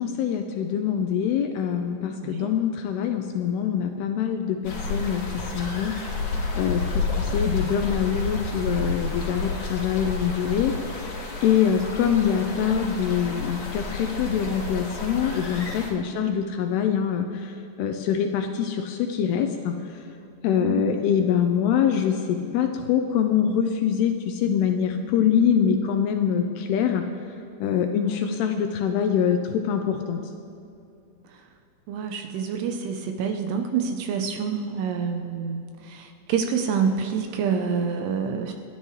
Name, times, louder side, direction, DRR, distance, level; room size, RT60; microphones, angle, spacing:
voice 1, 0.0-5.9 6.5-11.2 11.4-19.7 20.4-27.0 27.6-30.2, left 8 dB, 80° left, 6 dB, 2.4 m, -24 dB
voice 2, 2.1-2.5 16.0-16.3 20.6-21.0 28.0-28.2 31.9-38.5, right 6 dB, 75° right, 5 dB, 2.6 m, -27 dB
sound 1, 4.6-15.9, left 3 dB, 50° left, 2.8 m, -30 dB
28.5 x 11.5 x 3.2 m, 2.6 s
omnidirectional pair, 5.1 m